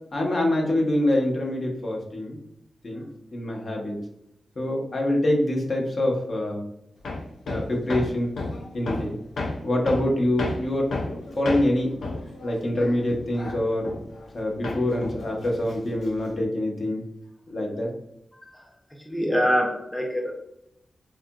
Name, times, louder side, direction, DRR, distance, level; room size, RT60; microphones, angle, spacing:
voice 1, 0.1-2.4 2.8-3.0 3.3-4.0 4.6-6.6 7.5-8.3 8.7-9.2 9.6-10.9 11.4-11.9 12.4-13.9 14.3-17.0 17.5-17.9, left 1 dB, 55° left, -1 dB, 0.8 m, -25 dB
Hammer, 7.0-14.4 14.6-16.4, left 2 dB, 90° left, 0.4 m, -33 dB
voice 2, 18.3-18.7 19.0-20.3, equal, 10° left, 0 dB, 0.4 m, -26 dB
2.8 x 2.4 x 2.2 m, 0.81 s
cardioid pair, 75°, 0 cm